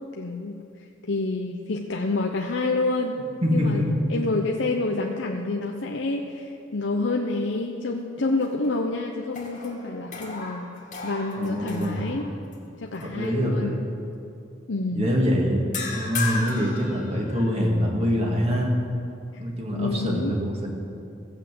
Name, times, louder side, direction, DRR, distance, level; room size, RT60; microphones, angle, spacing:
voice 1, 0.2-0.5 1.0-3.2 3.5-3.8 4.1-10.7 11.0-12.3 12.8-13.8 14.7-15.1 19.3-19.4 19.7-20.3, left 3 dB, 80° left, 1 dB, 0.8 m, -28 dB
voice 2, 3.4-3.9 11.4-12.2 13.0-13.9 14.9-15.6 15.9-18.8 19.4-20.7, equal, 35° right, -1 dB, 2.2 m, -24 dB
sound 1, 8.2-8.9 9.3-12.6 13.0-13.3 15.7-17.7, left 4 dB, 40° left, 2.1 m, -35 dB
15.0 x 8.1 x 7.6 m, 2.5 s
head